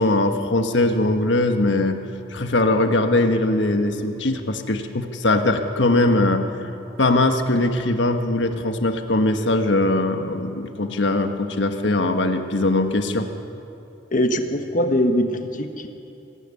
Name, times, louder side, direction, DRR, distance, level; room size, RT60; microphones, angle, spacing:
voice 1, 0.0-2.0 2.3-6.5 7.0-13.3, left 2 dB, 75° left, 6 dB, 1.4 m, -21 dB
voice 2, 14.1-15.9, equal, 45° left, 6 dB, 1.3 m, -22 dB
24.5 x 12.5 x 9.7 m, 2.7 s
head